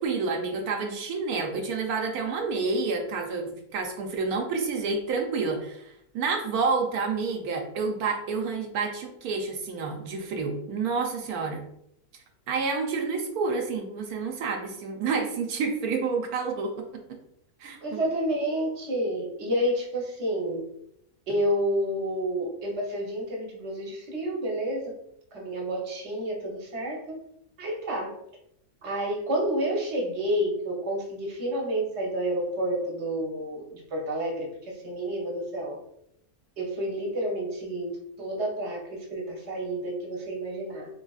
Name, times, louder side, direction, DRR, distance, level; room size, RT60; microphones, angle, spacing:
voice 1, 0.0-11.6 12.5-17.0 17.6-18.0, right 4 dB, 80° right, 2 dB, 1.1 m, -29 dB
voice 2, 17.8-20.6 21.3-24.9 25.3-27.1 27.6-28.1 28.8-35.8 36.6-38.8 39.1-40.9, right 1 dB, 50° right, -1 dB, 1.1 m, -29 dB
3.8 x 3.3 x 2.3 m, 0.76 s
omnidirectional pair, 1.6 m